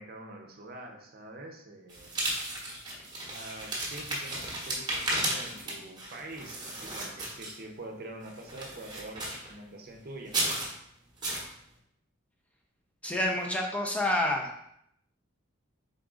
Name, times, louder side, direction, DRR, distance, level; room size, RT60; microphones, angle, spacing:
voice 1, 0.0-2.1 3.3-10.3, right 2 dB, 45° right, 3 dB, 0.7 m, -45 dB
sound 1, 1.9-7.8 8.3-9.5 10.2-10.7 11.2-11.5, right 1 dB, 20° right, 1.0 m, -34 dB
voice 2, 13.0-14.5, left 1 dB, 5° left, 1 dB, 0.5 m, -28 dB
3.9 x 3.7 x 3.7 m, 0.74 s
head